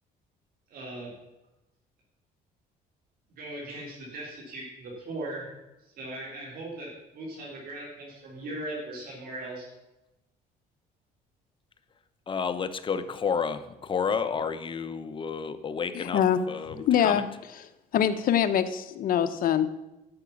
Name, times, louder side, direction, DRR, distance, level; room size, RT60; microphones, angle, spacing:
voice 1, 0.7-1.1 3.4-5.4 6.0-6.9 7.1-9.7, right 1 dB, 60° right, -3 dB, 3.5 m, -38 dB
voice 2, 12.3-17.3, left 6 dB, 30° left, 10 dB, 0.8 m, -31 dB
voice 3, 15.9-16.4 16.8-17.2 17.9-19.7, left 9 dB, 55° left, 11 dB, 0.9 m, -24 dB
12.5 x 6.1 x 7.0 m, 0.96 s
cardioid pair, 110°, 17 cm